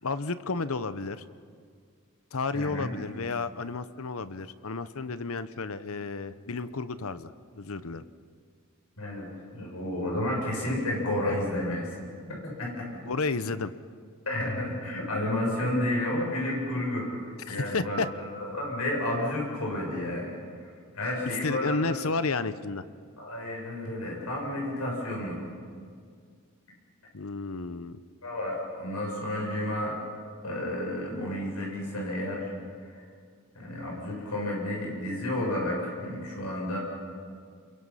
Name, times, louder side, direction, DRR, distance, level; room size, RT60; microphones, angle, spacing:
voice 1, 0.0-1.2 2.3-8.0 13.1-13.7 17.5-18.1 21.2-22.8 27.1-28.0, left 4 dB, 70° left, 13 dB, 0.9 m, -32 dB
voice 2, 2.5-2.9 9.0-9.3 9.5-12.0 12.4-13.0 14.3-22.0 23.2-25.4 28.2-29.9 30.4-32.5 32.8-33.0 33.5-36.8, left 1 dB, 90° left, -2 dB, 7.0 m, -31 dB
29.0 x 23.0 x 5.7 m, 2.1 s
head